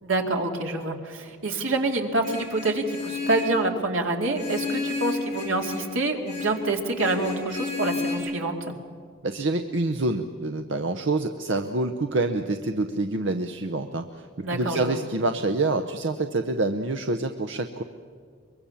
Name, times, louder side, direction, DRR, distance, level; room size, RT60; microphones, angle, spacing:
voice 1, 0.0-8.7 14.4-15.0, right 2 dB, 85° right, 3 dB, 2.4 m, -27 dB
Vehicle horn car horn honking, 2.2-3.6 4.3-5.9 6.2-6.6 7.0-8.2, left 4 dB, 35° left, 6.6 m, -32 dB
voice 2, 9.2-17.8, right 2 dB, 65° right, 7 dB, 0.8 m, -27 dB
23.5 x 22.5 x 7.1 m, 2.1 s
head